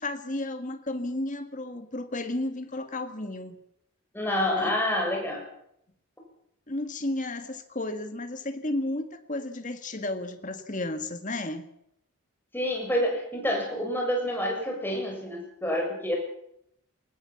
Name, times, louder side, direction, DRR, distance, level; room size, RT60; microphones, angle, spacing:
voice 1, 0.0-3.6 4.6-4.7 6.7-11.6, left 2 dB, 35° left, 7 dB, 2.0 m, -33 dB
voice 2, 4.1-5.5 12.5-16.2, left 1 dB, 10° left, 0 dB, 7.0 m, -28 dB
20.0 x 19.0 x 7.2 m, 0.74 s
head